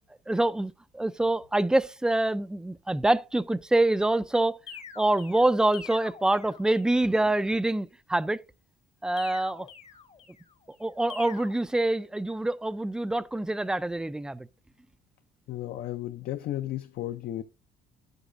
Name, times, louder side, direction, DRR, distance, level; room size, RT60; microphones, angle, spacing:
voice 1, 0.3-4.6 5.0-8.4 9.0-9.7 10.8-14.5, right 2 dB, 5° right, 0.3 m, -26 dB
sound 1, 4.7-7.1 9.2-10.5 11.1-11.5, left 7 dB, 40° left, 1.0 m, -46 dB
voice 2, 15.5-17.4, left 13 dB, 65° left, 0.5 m, -34 dB
10.0 x 8.0 x 2.5 m
cardioid pair, 110°, 17 cm